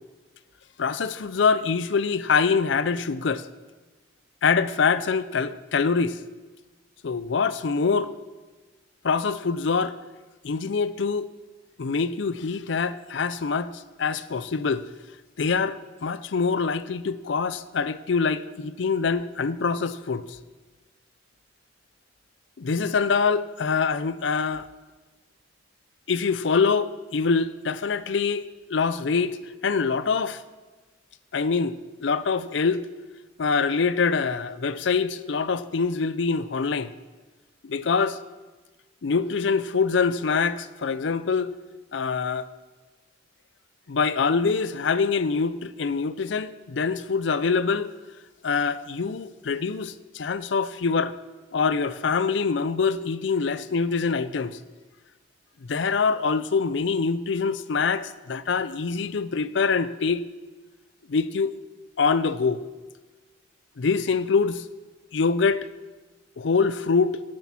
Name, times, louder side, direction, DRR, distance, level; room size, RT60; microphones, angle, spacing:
voice 1, 0.8-3.4 4.4-6.2 7.0-8.1 9.0-10.0 10.4-11.3 11.8-13.7 14.0-14.8 15.4-20.2 22.6-24.6 26.1-29.4 29.6-30.4 31.3-32.9 33.4-36.9 37.6-38.2 39.0-41.5 41.9-42.5 43.9-47.9 48.4-51.1 51.5-54.6 55.7-60.2 61.1-61.5 62.0-62.6 63.8-64.7 65.1-65.7 66.4-67.2, left 5 dB, 65° left, 0.5 m, -24 dB
11.5 x 7.8 x 5.9 m
head